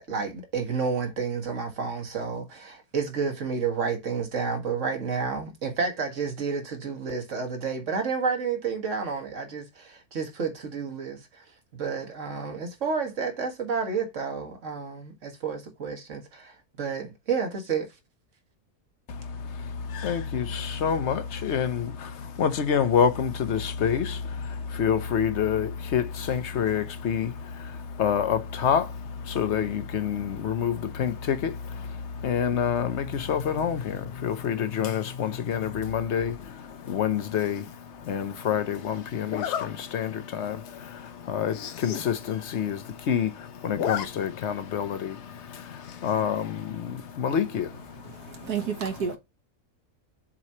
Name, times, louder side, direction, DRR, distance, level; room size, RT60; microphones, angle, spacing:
voice 1, 0.0-11.4 11.7-17.9, right 5 dB, 50° right, 1.9 m, -30 dB
voice 2, 19.1-48.6 48.8-49.2, left 8 dB, 55° left, 1.0 m, -28 dB
Zipper (clothing), 37.4-37.7 39.3-39.7 40.2-40.4 40.7-40.8 41.1-41.2 41.4-42.1 42.4-42.5 42.7-43.2 43.6-44.1 44.4-44.5 45.8-46.2, left 8 dB, 90° left, 1.4 m, -33 dB
voice 3, 48.0-49.2, right 7 dB, 80° right, 1.8 m, -31 dB
7.4 x 3.1 x 4.2 m
omnidirectional pair, 1.6 m